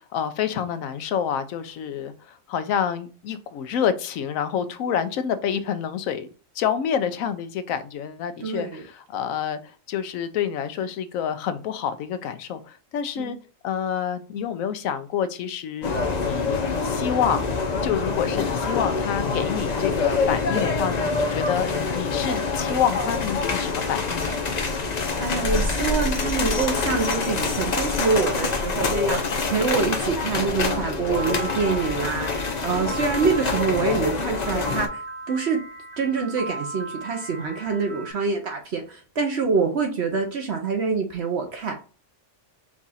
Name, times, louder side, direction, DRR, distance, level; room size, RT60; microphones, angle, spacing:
voice 1, 0.0-6.3 6.5-13.4 13.6-15.9 16.2-16.6 16.8-17.5 17.8-24.3, left 8 dB, 90° left, 1.0 m, -28 dB
voice 2, 8.4-8.8 13.2-13.4 25.2-35.6 36.0-41.7, right 5 dB, 60° right, 0.9 m, -26 dB
sound 1, 15.8-34.9, left 4 dB, 45° left, 0.6 m, -26 dB
Piano, 31.1-38.1, right 2 dB, 80° right, 2.2 m, -37 dB
4.8 x 2.4 x 4.0 m
omnidirectional pair, 1.4 m